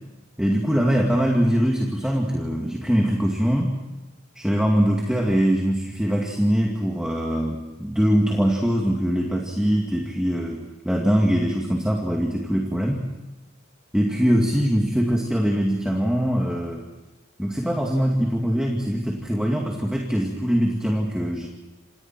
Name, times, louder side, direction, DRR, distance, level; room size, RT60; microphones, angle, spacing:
voice 1, 0.4-3.7 4.4-13.0 13.9-16.9 17.4-21.5, equal, 5° right, 0 dB, 2.3 m, -22 dB
28.5 x 27.5 x 4.5 m, 1.1 s
head